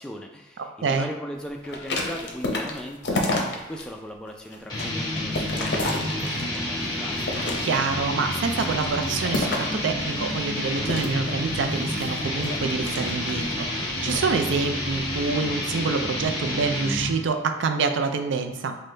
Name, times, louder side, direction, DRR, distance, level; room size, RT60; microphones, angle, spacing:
voice 1, 0.0-7.2, equal, 5° left, 1 dB, 0.3 m, -38 dB
sound 1, 1.6-3.8 4.3-6.6 7.1-8.0 8.5-9.8 10.8-13.5 14.0-14.3, left 2 dB, 60° left, 0.6 m, -30 dB
sound 2, 4.7-17.2, left 1 dB, 20° left, 1.0 m, -29 dB
sound 3, 4.8-15.3, right 1 dB, 20° right, 0.7 m, -47 dB
voice 2, 7.6-18.8, right 4 dB, 75° right, 6 dB, 0.4 m, -26 dB
5.2 x 2.1 x 3.2 m, 0.99 s
head